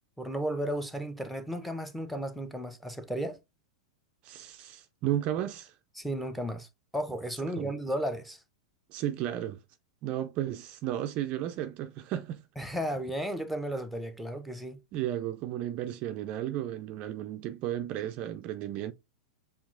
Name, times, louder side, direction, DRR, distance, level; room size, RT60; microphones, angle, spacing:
voice 1, 0.2-3.4 6.0-6.7 6.9-8.4 12.6-14.8, right 1 dB, ahead, 0.7 m, -34 dB
voice 2, 4.2-5.7 7.6-7.7 8.9-9.6 10.0-12.4 14.9-18.9, right 12 dB, 40° right, 0.4 m, -33 dB
7.1 x 2.5 x 2.5 m
figure-of-eight pair, 95°, 3 cm